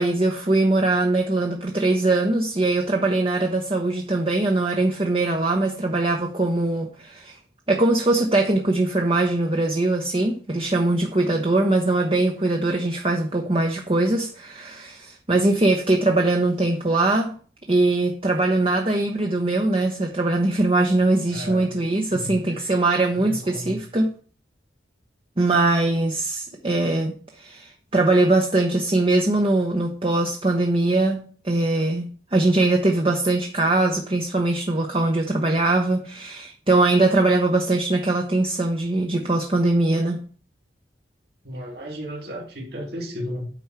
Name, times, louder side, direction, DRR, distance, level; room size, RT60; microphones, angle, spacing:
voice 1, 0.0-7.4 7.7-17.3 17.7-24.1 25.4-32.1 32.3-40.2, right 2 dB, 30° right, 0.9 m, -21 dB
voice 2, 21.3-21.7 22.1-22.7 23.1-23.8 41.4-43.5, equal, 60° right, 2.5 m, -34 dB
9.1 x 4.5 x 5.9 m
head